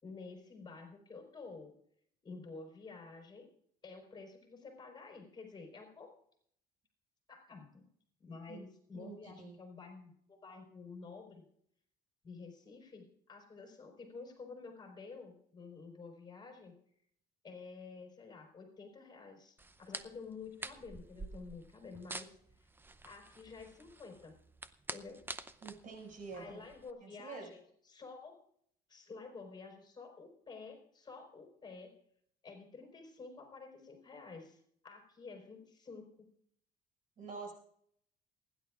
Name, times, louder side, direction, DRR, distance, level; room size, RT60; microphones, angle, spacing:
voice 1, 0.0-1.7 2.2-3.5 3.8-6.1 7.3-7.8 8.2-11.4 12.2-16.8 17.4-22.7 23.0-24.3 24.9-25.2 26.3-28.4 28.9-31.9 32.4-36.3, left 4 dB, 25° left, 2 dB, 4.6 m, -50 dB
voice 2, 8.9-9.5 25.6-26.6 27.0-27.5 37.2-37.5, right 4 dB, 55° right, 0 dB, 6.2 m, -47 dB
sound 1, 19.6-26.9, right 2 dB, 10° right, 0.7 m, -48 dB
28.0 x 11.0 x 2.5 m, 0.66 s
cardioid pair, 110°, 17 cm